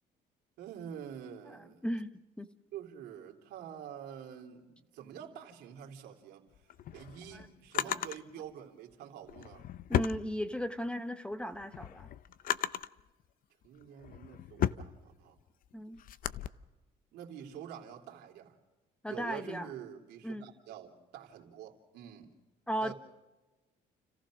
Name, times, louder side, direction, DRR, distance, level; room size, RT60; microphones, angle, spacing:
voice 1, 0.6-1.8 2.7-6.5 6.9-9.7 13.6-15.4 17.1-18.6 19.0-22.4 22.8-22.9, right 9 dB, 80° right, 3.2 m, -47 dB
voice 2, 1.5-2.5 7.3-7.4 7.8-8.0 9.9-12.1 15.7-16.0 19.0-19.7 20.2-20.5 22.7-22.9, equal, 5° left, 0.9 m, -36 dB
Drawer open or close, 6.5-8.2 9.2-10.9 11.3-13.0 13.6-16.5, left 11 dB, 55° left, 0.7 m, -35 dB
30.0 x 15.0 x 6.3 m
cardioid pair, 110°, 17 cm